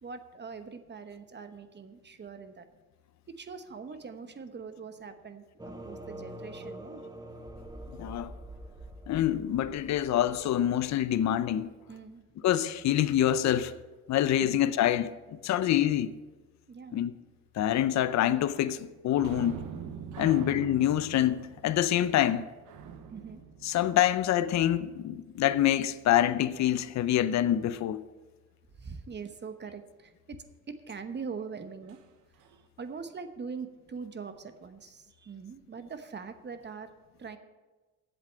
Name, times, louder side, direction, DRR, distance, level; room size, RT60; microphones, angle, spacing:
voice 1, 0.0-2.7 3.3-7.0 11.9-12.2 14.4-14.6 16.7-17.0 20.3-20.5 23.1-23.4 28.7-30.4 30.7-32.0 32.8-36.9 37.2-37.4, right 5 dB, 35° right, 1.0 m, -42 dB
sound 1, 5.6-11.3, right 1 dB, 15° right, 1.2 m, -45 dB
voice 2, 8.0-8.3 9.1-11.7 12.4-13.7 14.1-16.1 16.9-17.1 17.6-19.6 20.2-22.5 23.6-28.0, left 12 dB, 65° left, 0.6 m, -26 dB
sound 2, 19.2-24.5 31.9-32.0 32.4-32.6, right 6 dB, 90° right, 1.0 m, -43 dB
7.9 x 7.5 x 8.7 m
cardioid pair, 90°, 30 cm